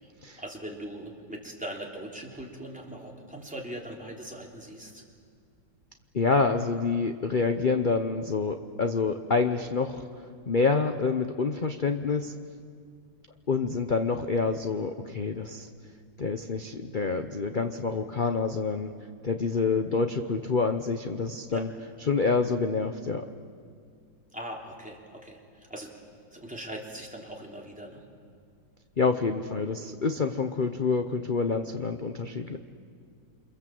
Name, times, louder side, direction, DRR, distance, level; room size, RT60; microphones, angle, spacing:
voice 1, 0.4-5.1 21.5-21.7 24.3-25.9 26.3-28.0, right 1 dB, 5° right, -2 dB, 3.4 m, -40 dB
voice 2, 6.1-10.0 10.5-12.3 13.5-15.7 16.2-18.9 19.2-21.7 22.1-23.3 29.0-32.6, left 4 dB, 40° left, 6 dB, 0.7 m, -27 dB
28.0 x 26.5 x 7.7 m, 2.2 s
omnidirectional pair, 2.0 m